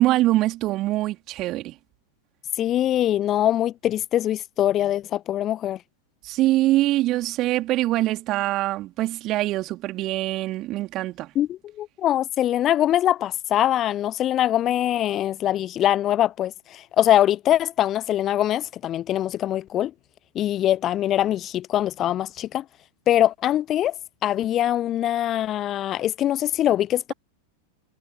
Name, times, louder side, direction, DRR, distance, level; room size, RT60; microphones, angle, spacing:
voice 1, 0.0-1.7 6.2-11.3, right 16 dB, 35° right, 3.3 m, -23 dB
voice 2, 2.6-5.8 11.3-19.9 20.3-22.6 23.1-23.9 24.2-27.1, left 12 dB, 30° left, 0.6 m, -23 dB
figure-of-eight pair, 90°, 0 cm